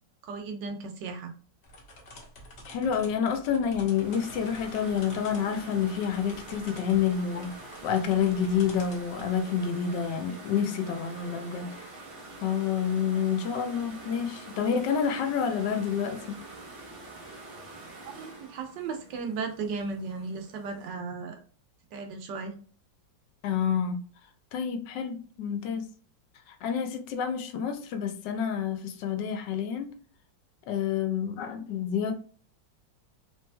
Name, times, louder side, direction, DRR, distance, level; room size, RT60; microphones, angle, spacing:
voice 1, 0.2-1.3 18.1-21.4 21.9-22.5, right 4 dB, 75° right, 1.2 m, -35 dB
sound 1, 1.6-9.4, left 1 dB, 50° left, 0.8 m, -49 dB
voice 2, 2.7-7.5 7.8-11.9 12.4-16.4 23.4-24.0 24.5-25.9 26.5-29.9 30.7-32.1, left 7 dB, 75° left, 1.2 m, -28 dB
sound 2, 3.7-20.9, right 2 dB, 50° right, 1.0 m, -46 dB
3.3 x 3.0 x 2.2 m
omnidirectional pair, 2.0 m